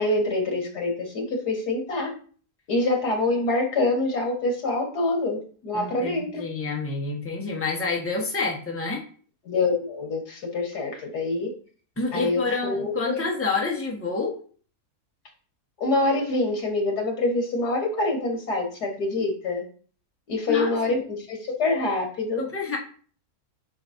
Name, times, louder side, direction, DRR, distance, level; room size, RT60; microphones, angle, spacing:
voice 1, 0.0-2.1 2.7-6.4 9.4-11.5 12.1-13.3 15.8-19.6 20.3-22.4, left 2 dB, 80° left, 1 dB, 2.3 m, -25 dB
voice 2, 5.7-9.0 12.0-14.3 20.5-20.9 22.4-22.8, left 4 dB, 10° left, -2 dB, 1.3 m, -28 dB
8.2 x 5.8 x 2.8 m, 0.43 s
omnidirectional pair, 1.7 m